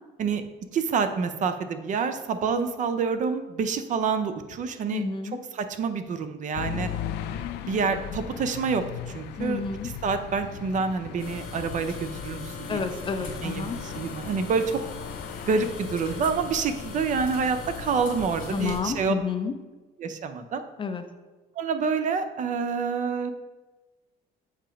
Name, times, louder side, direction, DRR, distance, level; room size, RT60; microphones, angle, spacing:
voice 1, 0.7-5.0 5.5-6.9 7.6-12.8 13.2-14.8 15.5-19.1 20.0-20.6 21.6-23.3, right 5 dB, 50° right, 9 dB, 0.5 m, -27 dB
voice 2, 4.9-5.4 9.4-9.9 12.7-13.8 18.5-19.5 20.8-21.0, left 5 dB, 30° left, 8 dB, 0.5 m, -30 dB
sound 1, 6.5-19.1, left 9 dB, 80° left, 0.4 m, -38 dB
sound 2, 11.2-18.8, left 3 dB, 55° left, 1.4 m, -40 dB
7.3 x 2.8 x 5.0 m, 1.2 s
cardioid pair, 110°, 17 cm